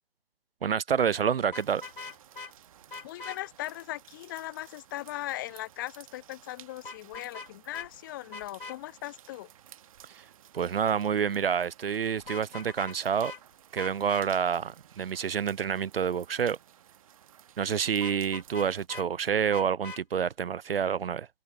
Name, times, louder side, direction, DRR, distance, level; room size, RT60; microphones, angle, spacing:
voice 1, 0.6-1.8 10.1-10.2 10.5-13.3 13.7-16.6 17.6-21.3, right 7 dB, 70° right, 0.5 m, -28 dB
Vehicle horn car horn honking, 1.5-2.5 2.9-3.4 6.8-7.5 7.7-7.9 8.3-8.8 12.2-13.0 13.2-13.4 13.8-14.3 18.0-19.1 19.5-20.0, left 3 dB, 60° left, 2.2 m, -42 dB
sound 1, 1.5-18.9, right 10 dB, 35° right, 1.3 m, -55 dB
voice 2, 3.0-9.5, left 16 dB, 20° left, 0.9 m, -39 dB
figure-of-eight pair, 135°, 30 cm